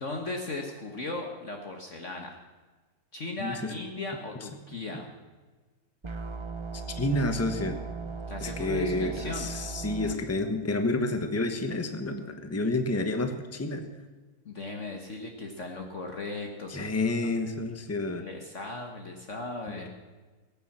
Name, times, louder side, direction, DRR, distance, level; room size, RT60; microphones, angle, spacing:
voice 1, 0.0-2.4 3.1-5.1 8.3-9.5 14.5-16.9 17.2-17.3 18.2-19.9, left 2 dB, 45° left, 2 dB, 1.7 m, -37 dB
voice 2, 3.4-3.7 6.9-7.8 8.4-13.9 16.7-18.2 19.7-19.9, left 2 dB, 10° left, 7 dB, 1.0 m, -29 dB
sound 1, 6.0-10.1, right 4 dB, 45° right, 0.3 m, -37 dB
19.0 x 9.4 x 7.3 m, 1.3 s
omnidirectional pair, 1.8 m